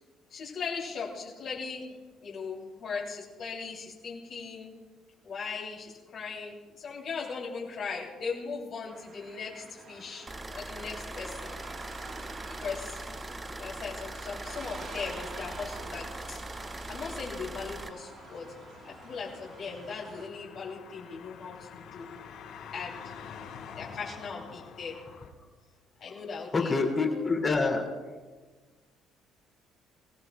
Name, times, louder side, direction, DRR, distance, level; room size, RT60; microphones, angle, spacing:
voice 1, 0.3-4.7 5.2-11.6 12.6-13.0 13.6-16.4 16.9-18.4 18.8-22.1 22.7-23.0 23.8-25.0 26.0-26.8 27.0-27.3, left 5 dB, 50° left, -4 dB, 2.9 m, -39 dB
sound 1, 8.9-20.3, right 4 dB, 45° right, 1.4 m, -47 dB
sound 2, 10.3-17.9, right 1 dB, 15° right, 0.6 m, -41 dB
sound 3, 17.3-25.3, left 6 dB, 80° left, 4.1 m, -47 dB
voice 2, 26.5-27.8, left 4 dB, 25° left, 1 dB, 2.4 m, -26 dB
24.5 x 16.0 x 2.3 m, 1.4 s
cardioid pair, 140°, 0 cm